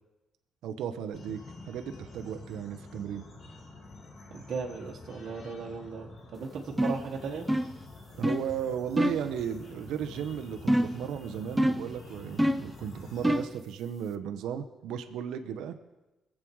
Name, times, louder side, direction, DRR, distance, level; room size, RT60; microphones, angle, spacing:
voice 1, 0.6-1.4 1.6-3.3 8.1-15.8, right 8 dB, 85° right, 8 dB, 0.8 m, -35 dB
sound 1, 1.1-13.5, left 2 dB, 55° left, 2.6 m, -48 dB
voice 2, 4.3-7.5, right 5 dB, 60° right, -2 dB, 1.6 m, -37 dB
sound 2, 6.8-7.1 7.5-7.8 8.2-8.5 9.0-9.3 10.7-11.1 11.6-11.9 12.4-12.7 13.2-13.6, equal, 5° right, 0.6 m, -26 dB
22.5 x 7.7 x 4.7 m, 1.0 s
cardioid pair, 90°, 0 cm